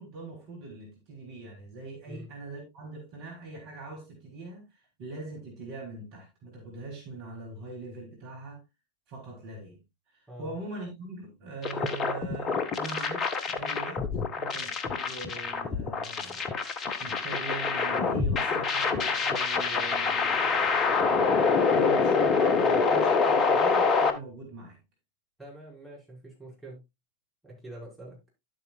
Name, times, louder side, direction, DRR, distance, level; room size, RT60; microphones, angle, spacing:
voice 1, 0.0-8.6 9.1-9.8 10.1-14.0 14.4-16.5 17.0-21.2 21.7-24.8, right 3 dB, 45° right, 3.5 m, -42 dB
sound 1, 11.6-24.1, left 4 dB, 30° left, 1.1 m, -26 dB
voice 2, 25.4-26.8 27.4-28.2, right 1 dB, ahead, 5.8 m, -45 dB
11.5 x 8.0 x 2.4 m
figure-of-eight pair, 90°, 0 cm